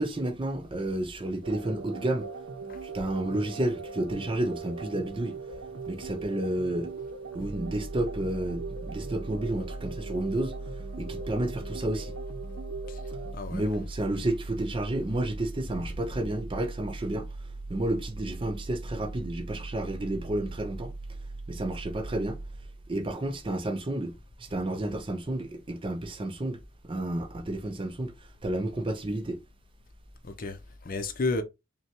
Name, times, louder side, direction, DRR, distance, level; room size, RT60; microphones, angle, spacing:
voice 1, 0.0-2.3 2.8-5.4 5.9-6.9 7.3-10.5 11.0-12.1 13.5-17.3 17.7-20.9 21.5-22.4 22.9-26.6 26.8-28.1 28.4-29.4, right 1 dB, 25° right, 0.5 m, -31 dB
sound 1, 1.4-13.3, right 4 dB, 85° right, 0.7 m, -40 dB
sound 2, 7.3-23.1, right 2 dB, 85° left, 0.7 m, -40 dB
voice 2, 13.3-13.7 30.2-31.4, left 3 dB, 45° left, 0.6 m, -32 dB
5.5 x 2.3 x 2.9 m
head